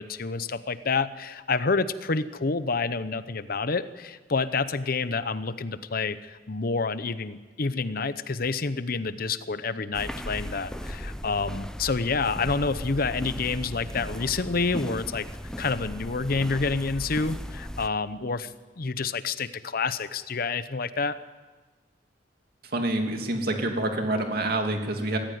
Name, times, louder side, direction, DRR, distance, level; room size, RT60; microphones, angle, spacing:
voice 1, 0.0-15.3 15.6-21.2, left 4 dB, 55° left, 14 dB, 0.8 m, -28 dB
sound 1, 9.9-17.9, equal, 5° left, 0.8 m, -37 dB
voice 2, 22.6-25.2, right 1 dB, 55° right, 4 dB, 2.7 m, -27 dB
22.5 x 15.0 x 9.5 m, 1.3 s
head